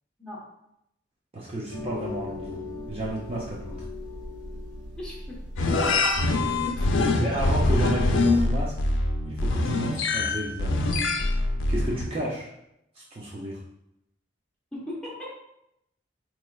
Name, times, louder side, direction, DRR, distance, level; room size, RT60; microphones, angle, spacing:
voice 1, 1.3-2.6 2.9-3.8 7.2-8.7 9.3-10.9 11.7-12.5 13.0-13.6, right 1 dB, 30° right, -4 dB, 0.5 m, -32 dB
sound 1, 1.7-7.7, left 2 dB, 75° right, 0.8 m, -39 dB
voice 2, 5.0-5.4 6.4-7.1 14.7-15.3, left 1 dB, 5° left, -6 dB, 1.0 m, -39 dB
sound 2, 5.6-12.0, left 2 dB, 85° left, 0.4 m, -24 dB
4.3 x 3.1 x 2.3 m, 0.81 s
head